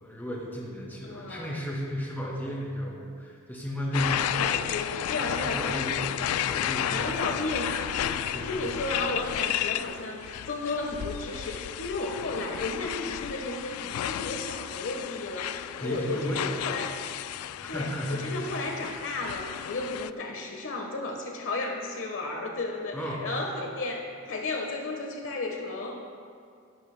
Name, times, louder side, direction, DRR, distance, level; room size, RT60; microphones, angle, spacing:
voice 1, 0.0-4.4 5.4-6.0 6.4-7.1 8.3-8.6 15.8-16.9 17.6-18.4 22.9-23.3, equal, 10° left, -4 dB, 2.3 m, -34 dB
voice 2, 1.0-1.6 4.2-5.8 6.8-16.9 17.7-26.0, left 2 dB, 65° left, 2 dB, 1.2 m, -34 dB
sound 1, 3.9-20.1, left 11 dB, 90° left, 0.3 m, -33 dB
16.5 x 12.5 x 2.2 m, 2.3 s
head